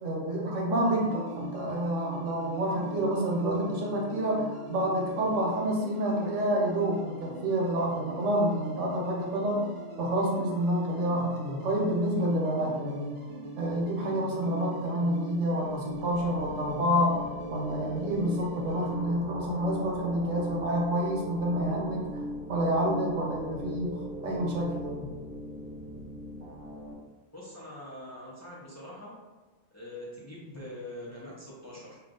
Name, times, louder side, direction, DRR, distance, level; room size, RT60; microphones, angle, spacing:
voice 1, 0.0-9.7 10.0-13.1 13.6-17.2 17.5-22.1 22.5-25.1, right 1 dB, 90° right, -2 dB, 1.2 m, -28 dB
sound 1, 0.8-18.9, right 1 dB, 35° right, 0.5 m, -43 dB
sound 2, 15.4-26.9, equal, 50° right, 1.1 m, -40 dB
voice 2, 27.3-29.2 29.7-32.0, left 1 dB, 20° left, -7 dB, 0.5 m, -43 dB
3.1 x 2.4 x 3.7 m, 1.2 s
omnidirectional pair, 1.3 m